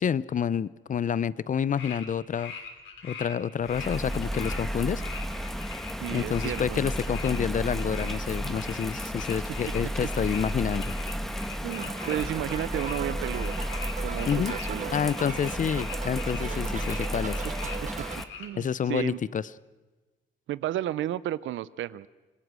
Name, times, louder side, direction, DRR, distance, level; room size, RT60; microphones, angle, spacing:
voice 1, 0.0-2.5 3.0-5.0 6.1-10.9 14.3-14.5 14.9-17.4 18.5-19.4, left 8 dB, 40° left, 19 dB, 0.6 m, -28 dB
sound 1, 1.8-2.1 2.3-3.3 3.6-18.5, left 6 dB, 75° left, 3.1 m, -42 dB
Bird vocalization bird call bird song / Rain, 3.6-18.2, equal, ahead, 1.3 m, -33 dB
voice 2, 6.0-6.8 10.0-10.1 11.6-13.6 14.0-14.9 18.4-19.2 20.5-22.1, right 13 dB, 75° right, 19 dB, 0.6 m, -32 dB
sound 2, 11.6-18.2, right 7 dB, 40° right, 1.1 m, -39 dB
25.5 x 20.0 x 6.2 m, 1.2 s
cardioid pair, 90°, 20 cm